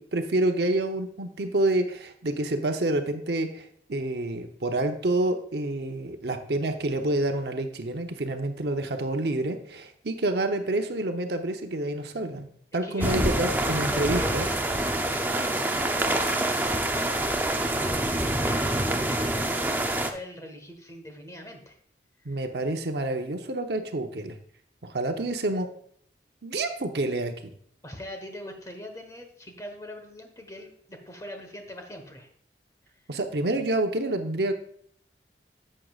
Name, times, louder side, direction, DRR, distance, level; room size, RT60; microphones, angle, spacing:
voice 1, 0.0-12.5 12.7-14.5 22.2-24.4 24.8-25.7 26.4-27.3 33.1-34.5, right 2 dB, 70° right, 5 dB, 0.8 m, -28 dB
voice 2, 12.8-13.4 13.8-17.2 17.5-21.8 22.2-22.4 27.8-32.3, left 1 dB, 20° left, 4 dB, 1.2 m, -42 dB
sound 1, 13.0-20.1, right 1 dB, 10° right, 0.6 m, -26 dB
11.0 x 7.6 x 2.4 m, 0.62 s
head